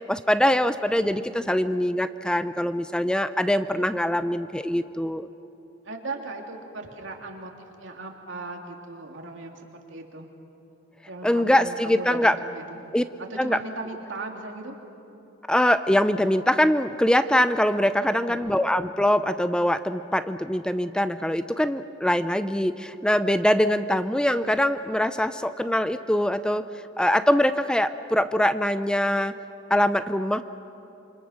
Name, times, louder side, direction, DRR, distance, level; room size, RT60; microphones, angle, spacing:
voice 1, 0.0-5.3 11.2-12.4 12.9-13.0 13.4-13.6 15.5-26.7 27.0-29.3 29.7-30.4, left 1 dB, 5° left, 11 dB, 0.5 m, -23 dB
voice 2, 5.8-10.3 11.1-12.8 13.2-14.7 18.2-18.6, right 3 dB, 80° right, 2 dB, 2.8 m, -37 dB
27.5 x 25.0 x 6.5 m, 2.9 s
head